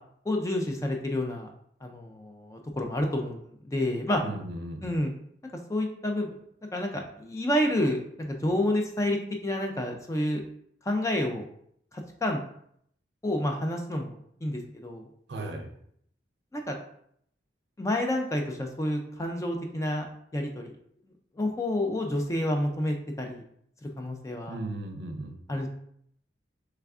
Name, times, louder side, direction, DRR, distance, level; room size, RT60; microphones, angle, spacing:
voice 1, 0.3-1.5 1.8-4.2 4.8-5.1 5.7-6.3 6.7-10.4 10.8-11.4 11.9-12.4 13.2-14.2 14.4-15.1 16.5-16.8 17.8-20.0 20.3-20.7 21.4-23.4 23.8-24.6 25.5-25.7, left 1 dB, 15° left, 2 dB, 0.3 m, -29 dB
voice 2, 4.2-4.8 15.3-15.7 24.5-25.3, right 2 dB, 70° right, 4 dB, 0.5 m, -36 dB
3.4 x 3.3 x 2.4 m, 0.68 s
head